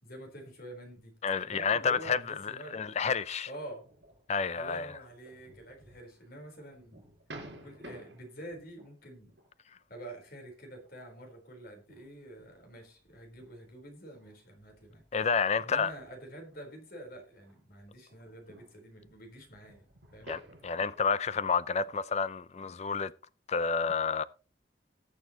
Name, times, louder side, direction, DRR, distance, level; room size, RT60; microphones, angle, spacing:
voice 1, 0.0-1.2 1.4-2.9 3.5-3.8 4.5-7.0 7.5-9.4 9.9-15.0 15.6-19.9 20.1-20.3, right 1 dB, 55° left, 4.1 m, -47 dB
voice 2, 1.2-3.5 4.3-4.9 15.1-15.9 20.3-23.1 23.5-24.2, left 5 dB, 35° left, 0.5 m, -30 dB
sound 1, 3.8-9.5 9.9-10.2 10.7-11.3 11.9-17.6 17.8-21.1, right 1 dB, 70° right, 5.2 m, -53 dB
20.0 x 7.0 x 3.0 m
head